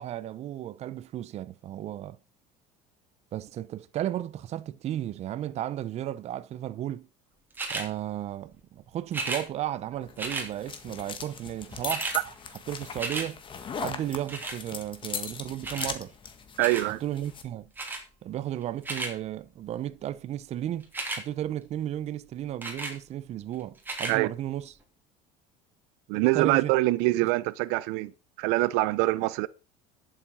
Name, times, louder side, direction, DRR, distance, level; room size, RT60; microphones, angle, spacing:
voice 1, 0.0-2.2 3.3-7.1 7.7-12.1 12.7-13.4 13.8-16.1 17.0-17.7 18.2-20.9 21.2-24.7 26.3-26.7, right 12 dB, 40° right, 0.8 m, -34 dB
sound 1, 7.5-7.9 9.1-9.4 10.2-10.5 11.4-11.5 11.7-12.2 12.6-13.3 14.3-14.6 15.6-15.9 16.6-16.9 17.8-18.0 18.6-19.1 20.8-21.2 22.6-23.0 23.8-24.1 24.8-24.9, right 3 dB, 10° right, 3.1 m, -33 dB
sound 2, 10.0-17.5, left 6 dB, 30° left, 1.8 m, -39 dB
voice 2, 16.6-17.0 24.1-24.3 26.1-28.1 28.4-29.5, right 20 dB, 75° right, 0.7 m, -24 dB
11.5 x 7.6 x 5.5 m
cardioid pair, 140°, 17 cm